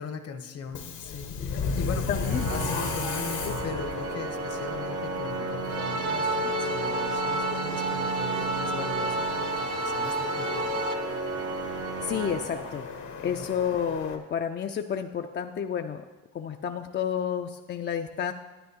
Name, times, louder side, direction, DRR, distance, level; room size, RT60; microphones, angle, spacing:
voice 1, 0.0-2.1 2.5-9.5 9.8-11.1 13.2-13.5, left 6 dB, 55° left, 8 dB, 0.8 m, -39 dB
Subway metro underground, 0.7-14.2, left 5 dB, 75° left, 1.0 m, -35 dB
voice 2, 2.1-2.5 12.0-12.9 13.2-16.0 16.3-18.3, left 8 dB, 35° left, 5 dB, 0.4 m, -30 dB
Organ, 2.2-13.2, right 5 dB, 50° right, 0.6 m, -34 dB
sound 1, 5.7-10.9, right 1 dB, 85° right, 0.8 m, -30 dB
10.0 x 9.4 x 2.8 m, 1.2 s
cardioid pair, 90°, 30 cm